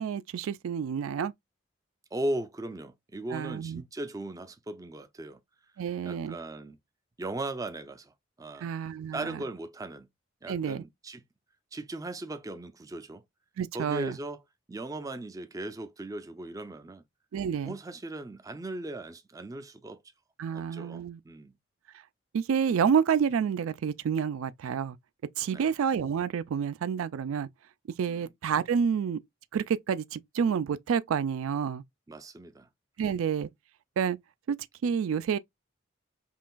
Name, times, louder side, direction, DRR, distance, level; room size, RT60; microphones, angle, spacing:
voice 1, 0.0-1.3 3.3-3.8 5.8-6.3 8.6-9.4 10.5-10.8 13.6-14.2 17.3-17.8 20.4-21.2 22.3-25.0 25.4-27.5 28.0-29.2 29.5-31.8 33.0-33.5 34.0-34.2 34.5-34.6 34.8-35.4, right 7 dB, 90° right, 0.3 m, -29 dB
voice 2, 2.1-5.4 6.0-6.8 7.2-8.7 9.1-10.1 10.4-11.2 11.7-13.2 13.7-14.4 14.7-17.0 17.6-20.0 20.5-21.5 25.5-25.7 28.1-28.3 32.1-32.7 33.0-33.2, right 1 dB, 15° right, 0.4 m, -38 dB
5.6 x 2.5 x 2.3 m
head